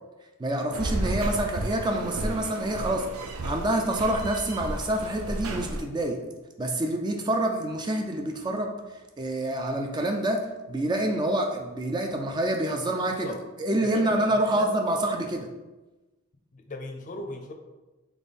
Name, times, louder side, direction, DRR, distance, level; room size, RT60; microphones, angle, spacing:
voice 1, 0.4-3.1 3.4-6.2 6.6-8.7 9.2-13.3 13.6-15.5, right 1 dB, 20° right, 3 dB, 0.3 m, -27 dB
sound 1, 0.7-5.8, right 1 dB, 85° right, 0.6 m, -33 dB
voice 2, 13.8-14.7 16.5-17.5, left 2 dB, 40° left, 3 dB, 0.5 m, -38 dB
3.5 x 3.4 x 4.1 m, 1.1 s
head